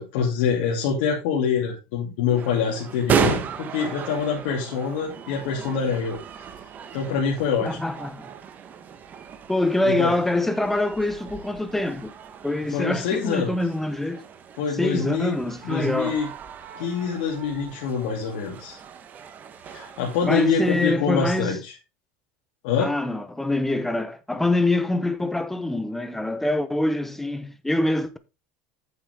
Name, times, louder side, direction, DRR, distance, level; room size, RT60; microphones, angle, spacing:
voice 1, 0.0-6.2 6.9-7.8 9.8-10.2 12.7-13.6 14.6-15.3 15.6-16.3 16.7-18.8 19.7-21.7 22.6-22.9, left 6 dB, 75° left, 2.7 m, -25 dB
sound 1, 2.3-20.9, right 8 dB, 30° right, 1.0 m, -35 dB
voice 2, 7.7-8.3 9.5-12.1 12.4-14.2 14.8-16.2 20.2-21.6 22.8-28.2, left 2 dB, 5° left, 0.8 m, -25 dB
8.5 x 7.2 x 3.5 m
supercardioid pair, 145°, 6 cm